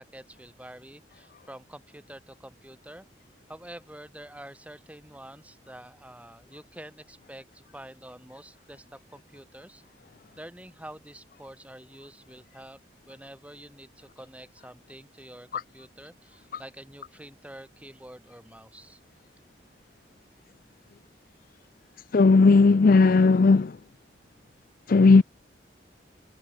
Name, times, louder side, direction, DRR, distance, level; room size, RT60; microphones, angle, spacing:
voice 1, 0.0-3.1 3.5-9.8 10.4-12.8 13.1-19.0, right 1 dB, 10° right, 4.8 m, -47 dB
voice 2, 22.1-23.8 24.9-25.2, left 4 dB, 50° left, 0.4 m, -17 dB
head